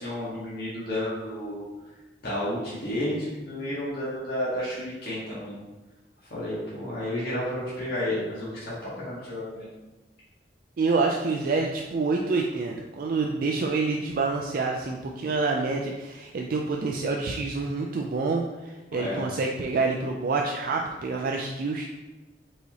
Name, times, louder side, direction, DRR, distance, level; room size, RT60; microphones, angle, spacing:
voice 1, 0.0-1.7 2.2-5.5 6.3-9.7 18.9-19.2, left 1 dB, 60° left, -8 dB, 1.4 m, -31 dB
voice 2, 10.8-21.9, right 3 dB, 55° right, 0 dB, 0.4 m, -27 dB
4.8 x 4.0 x 2.8 m, 1.1 s
head